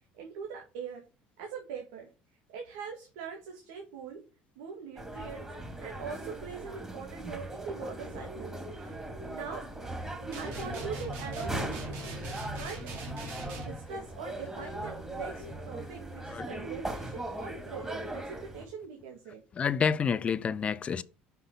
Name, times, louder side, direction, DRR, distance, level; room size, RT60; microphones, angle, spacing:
voice 1, 0.1-1.1 1.4-2.1 2.5-4.2 4.6-12.0 12.5-12.9 13.5-19.4, right 6 dB, 90° right, 2.0 m, -43 dB
sound 1, 5.0-18.6, right 1 dB, 15° right, 2.7 m, -39 dB
sound 2, 10.3-13.8, right 1 dB, 70° right, 3.3 m, -40 dB
voice 2, 19.5-21.0, left 6 dB, 35° left, 0.6 m, -28 dB
5.8 x 5.7 x 5.5 m
supercardioid pair, 95°, 4 cm